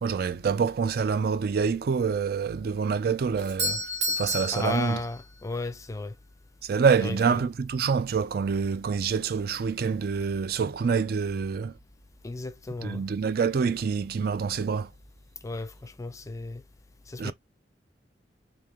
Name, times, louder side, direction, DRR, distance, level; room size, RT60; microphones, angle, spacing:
voice 1, 0.0-3.8 4.2-5.0 6.6-11.7 12.8-14.9 17.2-17.3, right 6 dB, 60° right, 0.4 m, -26 dB
Doorbell, 3.4-5.5, equal, 80° right, 1.1 m, -31 dB
voice 2, 4.5-6.2 7.0-7.5 12.2-13.1 15.4-16.6 17.1-17.3, left 2 dB, 20° left, 0.4 m, -34 dB
3.0 x 2.8 x 3.5 m
head